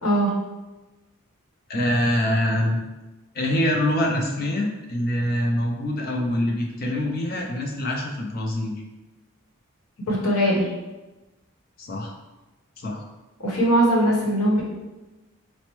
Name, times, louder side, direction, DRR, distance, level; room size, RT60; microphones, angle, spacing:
voice 1, 1.7-2.8 3.3-8.7 11.8-12.1 12.8-13.0, left 1 dB, 40° left, 0 dB, 0.4 m, -24 dB
voice 2, 10.1-10.7 13.4-14.6, right 1 dB, 80° left, -4 dB, 1.0 m, -20 dB
4.3 x 2.0 x 3.0 m, 1.1 s
head